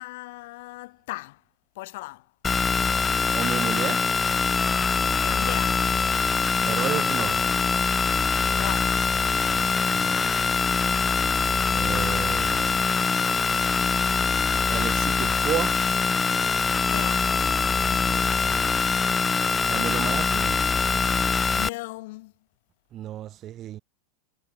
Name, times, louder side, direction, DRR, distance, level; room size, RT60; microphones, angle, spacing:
voice 1, 0.0-1.4 1.8-2.2 5.2-5.8 8.5-8.9 16.9-17.3 17.8-18.4 21.5-22.3, left 21 dB, 55° left, 4.1 m, -37 dB
sound 1, 2.4-21.7, left 5 dB, 10° left, 1.2 m, -23 dB
voice 2, 3.3-4.1 6.6-7.4 9.5-10.5 11.7-12.8 14.7-15.9 18.1-18.9 19.7-20.6 22.9-23.8, right 12 dB, 30° right, 0.9 m, -33 dB
supercardioid pair, 165°, 0 cm